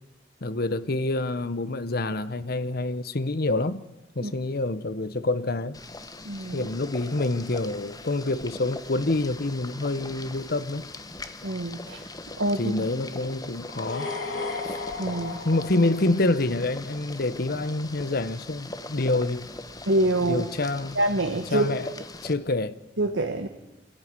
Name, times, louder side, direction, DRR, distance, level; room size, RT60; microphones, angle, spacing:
voice 1, 0.4-3.8 4.1-5.8 6.5-10.8 12.6-14.1 14.7-14.8 15.4-19.5 20.2-21.0 21.5-21.9 22.2-22.8, left 2 dB, 55° left, 0.9 m, -27 dB
Boiling, 5.7-22.3, left 2 dB, 20° left, 1.2 m, -41 dB
voice 2, 6.2-6.7 11.4-12.0 12.4-12.6 15.0-15.4 19.9-20.4 20.9-21.8 23.0-23.5, right 1 dB, 90° right, 1.7 m, -25 dB
sound 1, 13.7-16.7, left 3 dB, 80° left, 4.0 m, -35 dB
25.0 x 14.5 x 9.7 m
head